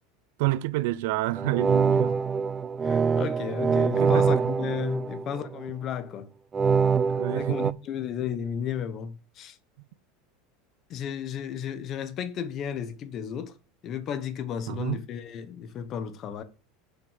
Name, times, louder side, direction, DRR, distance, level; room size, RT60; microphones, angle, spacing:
voice 1, 0.4-2.2 4.0-4.3 7.1-7.8 14.7-15.0, right 17 dB, 70° right, 0.6 m, -28 dB
sound 1, 1.4-5.7 6.5-7.7, right 5 dB, 20° right, 0.4 m, -24 dB
voice 2, 2.8-6.3 7.3-9.6 10.9-13.6 13.8-16.4, left 8 dB, 40° left, 1.2 m, -33 dB
7.3 x 5.7 x 6.6 m
supercardioid pair, 130°, 0 cm